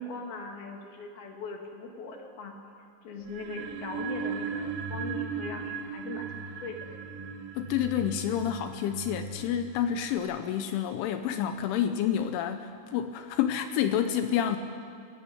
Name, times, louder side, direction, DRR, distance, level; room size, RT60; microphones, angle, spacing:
voice 1, 0.0-2.5 3.0-6.9, left 3 dB, 55° left, 2 dB, 3.8 m, -40 dB
sound 1, 3.3-10.2, right 5 dB, 65° right, 2.2 m, -37 dB
voice 2, 7.6-14.6, left 9 dB, 80° left, 8 dB, 3.2 m, -29 dB
21.5 x 16.5 x 9.5 m, 2.3 s
omnidirectional pair, 5.7 m